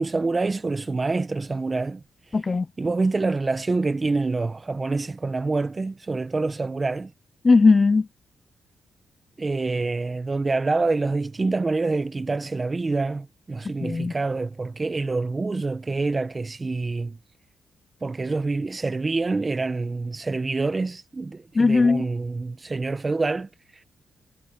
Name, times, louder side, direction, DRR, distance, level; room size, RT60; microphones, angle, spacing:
voice 1, 0.0-2.0 2.8-7.1 9.4-17.2 18.0-23.8, right 3 dB, 35° right, 1.0 m, -26 dB
voice 2, 2.3-2.7 7.4-8.1 13.8-14.1 21.5-22.0, left 4 dB, 35° left, 0.3 m, -18 dB
cardioid pair, 60°, 0 cm